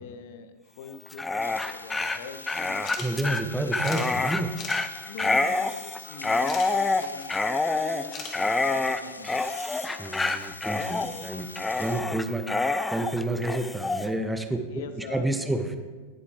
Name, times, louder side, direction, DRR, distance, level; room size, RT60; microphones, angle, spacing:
voice 1, 0.0-3.0 5.0-9.6 14.7-15.5, left 6 dB, 55° left, 11 dB, 0.9 m, -44 dB
Dog, 1.1-14.1, left 3 dB, 10° left, 0.5 m, -27 dB
sound 1, 1.4-12.0, left 2 dB, 80° left, 0.5 m, -45 dB
sound 2, 2.8-3.1 3.4-3.5 3.8-4.1 4.6-4.8 6.5-6.7 8.1-8.3, left 5 dB, 30° left, 1.7 m, -37 dB
voice 2, 3.0-4.5 10.0-11.5 11.7-12.5 12.9-15.8, right 2 dB, 5° right, 6 dB, 1.0 m, -29 dB
19.5 x 8.1 x 3.3 m, 1.4 s
figure-of-eight pair, 90°, 0 cm